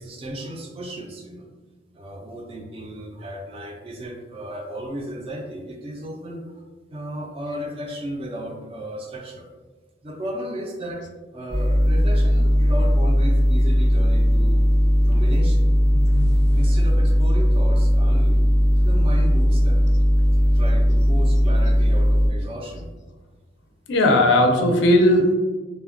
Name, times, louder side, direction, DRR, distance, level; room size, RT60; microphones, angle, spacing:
voice 1, 0.0-1.5 1.9-6.6 6.9-9.5 10.0-11.0 11.3-14.7 15.0-15.7 16.5-18.4 18.8-19.8 20.5-22.9, equal, 30° right, 1 dB, 0.3 m, -34 dB
sound 1, 11.5-22.3, equal, 85° right, 1.1 m, -18 dB
voice 2, 15.9-16.6 18.8-19.0 23.9-25.4, left 1 dB, 60° left, 3 dB, 0.4 m, -19 dB
3.2 x 2.1 x 2.4 m, 1.3 s
head